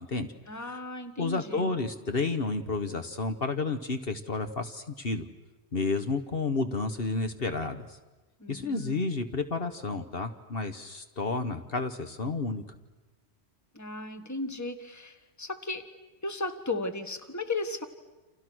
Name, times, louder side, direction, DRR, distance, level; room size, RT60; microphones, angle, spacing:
voice 1, 0.5-1.7 8.4-9.2 13.7-15.9 16.2-17.8, left 2 dB, 15° left, 9 dB, 1.5 m, -35 dB
voice 2, 1.2-5.3 5.7-8.0 8.5-12.6, left 3 dB, 60° left, 8 dB, 1.5 m, -31 dB
29.5 x 28.0 x 6.3 m, 1.1 s
omnidirectional pair, 1.1 m